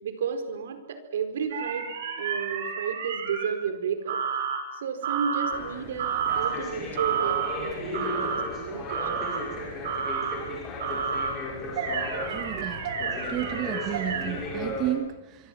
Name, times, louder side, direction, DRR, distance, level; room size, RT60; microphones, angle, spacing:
voice 1, 0.0-1.9 2.2-4.2 4.7-9.2, right 6 dB, 70° right, 8 dB, 4.6 m, -32 dB
sound 1, 1.5-3.5 4.1-4.6 5.0-5.5 6.0-6.5 7.0-7.5 7.9-8.4 8.9-9.4 9.8-10.4 10.8-11.3 11.8-14.3, right 7 dB, 50° right, 6.2 m, -30 dB
sound 2, 5.5-14.9, left 2 dB, 15° left, 5.6 m, -35 dB
voice 2, 12.3-12.9 13.3-15.5, right 12 dB, 25° right, 9 dB, 1.2 m, -32 dB
25.0 x 25.0 x 7.6 m, 0.95 s
supercardioid pair, 175°, 0 cm